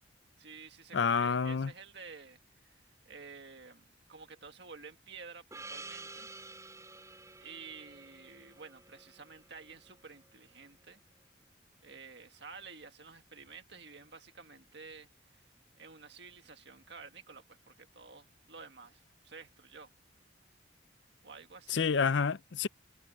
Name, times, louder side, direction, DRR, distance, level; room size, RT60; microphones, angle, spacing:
voice 1, 0.4-6.3 7.4-11.0 11.8-15.5 15.8-19.9 21.2-22.0, right 5 dB, 65° right, 1.7 m, -51 dB
voice 2, 0.9-1.7 21.7-22.7, left 5 dB, 70° left, 0.5 m, -28 dB
Gong, 5.5-10.3, right 3 dB, 15° right, 6.2 m, -50 dB
head